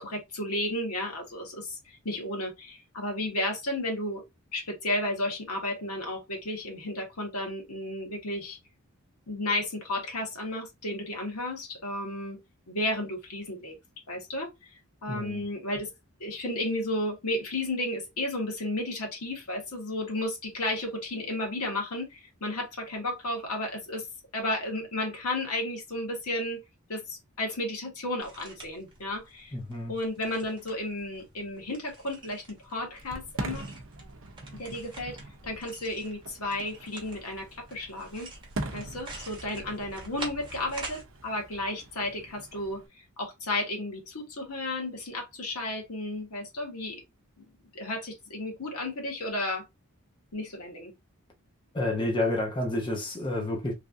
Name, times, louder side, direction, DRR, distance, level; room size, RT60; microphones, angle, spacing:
voice 1, 0.0-4.2 4.5-8.6 9.3-12.4 12.7-13.8 14.1-14.7 15.0-15.9 16.2-24.1 24.3-26.6 26.9-29.5 29.9-33.7 34.5-35.2 35.4-38.3 38.7-42.8 43.2-47.0 47.4-47.5 47.7-49.6 50.3-50.9, left 1 dB, 85° left, 1.3 m, -33 dB
voice 2, 15.1-15.4 29.5-29.9 51.7-53.7, left 1 dB, 20° left, 0.6 m, -29 dB
sound 1, 28.2-41.0, right 2 dB, 20° right, 1.0 m, -47 dB
Fireworks, 33.0-42.9, right 2 dB, 60° right, 0.6 m, -42 dB
3.2 x 2.6 x 2.4 m
head